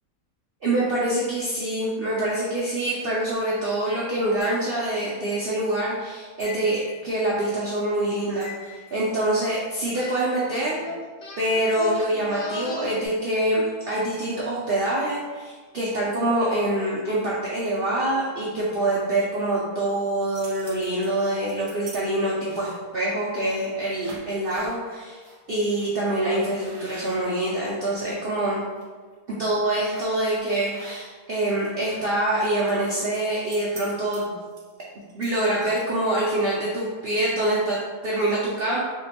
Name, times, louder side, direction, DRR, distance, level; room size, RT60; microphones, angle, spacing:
voice 1, 0.6-10.8 11.4-25.2 25.5-28.7 29.3-34.3 35.1-38.8, right 1 dB, 85° right, -6 dB, 0.5 m, -25 dB
sound 1, 4.4-5.0 6.4-7.1 8.4-9.0, left 5 dB, 45° left, 1.6 m, -42 dB
sound 2, 9.9-10.2 10.5-13.1, left 3 dB, 60° left, 0.6 m, -33 dB
sound 3, 20.1-22.0 22.4-22.9 23.5-23.7 23.9-24.7 25.2-25.4 25.7-25.9 26.4-28.1 28.6-28.8 29.9-30.2 30.7-31.3 31.6-36.1, right 1 dB, 40° right, 0.7 m, -45 dB
3.4 x 2.9 x 2.8 m, 1.4 s
omnidirectional pair, 1.7 m